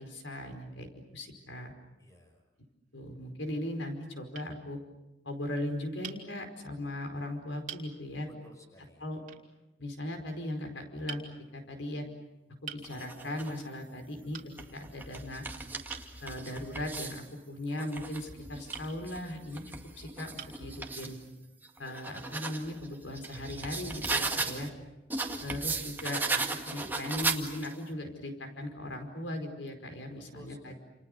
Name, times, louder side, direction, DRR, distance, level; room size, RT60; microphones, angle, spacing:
voice 1, 0.0-1.7 2.9-4.8 5.2-8.3 9.0-9.2 9.8-11.2 11.5-12.0 12.6-14.4 14.7-15.4 16.2-19.6 20.0-21.2 21.8-24.7 25.4-30.8, left 1 dB, 80° left, 5 dB, 4.9 m, -38 dB
voice 2, 2.0-2.5 8.3-9.1 24.5-24.9 30.3-30.8, equal, 15° left, 4 dB, 5.5 m, -55 dB
sound 1, 2.6-3.2 3.9-4.0 4.3-4.5 6.0-6.2 7.1-7.2 7.7-7.9 9.3-9.5 11.1-11.3 12.7-12.9 14.3-14.5 15.9-16.1 18.7-18.9 19.7-19.8 20.4-20.7, right 7 dB, 45° right, 3.6 m, -44 dB
sound 2, 12.8-13.6 14.3-17.3 17.7-21.2 21.6-24.7 25.1-27.8, right 3 dB, 10° right, 2.0 m, -37 dB
30.0 x 29.0 x 6.7 m, 1.0 s
head